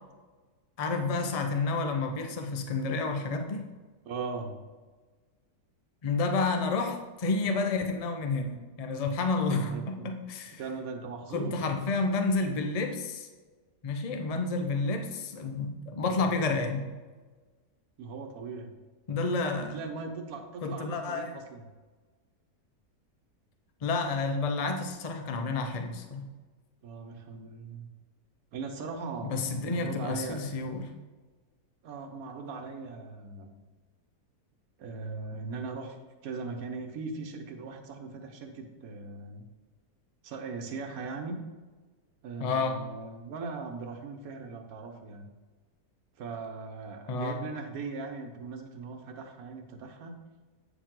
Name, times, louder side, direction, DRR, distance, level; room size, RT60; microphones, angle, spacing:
voice 1, 0.8-3.7 6.0-10.6 11.3-13.3 13.8-16.9 19.1-19.8 20.6-21.4 23.8-26.3 29.2-30.8 42.4-42.8 47.1-47.4, left 3 dB, 55° left, 5 dB, 0.4 m, -30 dB
voice 2, 4.0-4.5 9.5-10.1 10.5-11.6 18.0-18.7 19.7-21.6 26.8-27.9 28.5-30.4 31.8-33.5 34.8-36.0 36.2-39.5 40.2-41.4 42.2-45.3 46.2-50.2, right 4 dB, 60° right, 5 dB, 1.3 m, -39 dB
8.7 x 5.1 x 3.8 m, 1.3 s
omnidirectional pair, 1.8 m